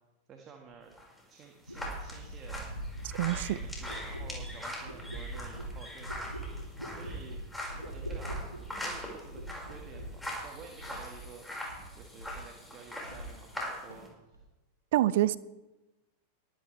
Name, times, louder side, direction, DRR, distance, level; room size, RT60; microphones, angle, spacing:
voice 1, 0.3-0.9 1.3-2.7 3.2-7.4 7.7-8.5 8.8-11.5 11.9-14.4, right 6 dB, 30° right, 1.8 m, -51 dB
sound 1, 0.9-14.1, left 1 dB, 5° left, 5.3 m, -42 dB
sound 2, 0.9-1.0 1.7-11.4 11.6-12.5 12.8-13.6 13.9-14.4, right 1 dB, 90° right, 2.2 m, -42 dB
voice 2, 3.1-3.6 14.9-15.4, right 14 dB, 55° right, 0.5 m, -26 dB
23.0 x 10.5 x 3.4 m
figure-of-eight pair, 90°, 0 cm